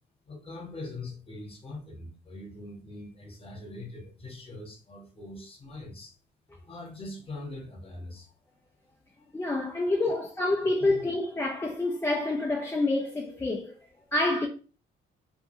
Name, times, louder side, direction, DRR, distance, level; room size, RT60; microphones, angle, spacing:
voice 1, 0.3-6.2 6.7-8.3 10.0-10.2 10.8-11.0, left 2 dB, 30° left, 1.0 m, -42 dB
voice 2, 9.3-13.7 14.1-14.5, left 2 dB, 15° left, 0.3 m, -27 dB
2.5 x 2.1 x 2.9 m
cardioid pair, 90°, 20 cm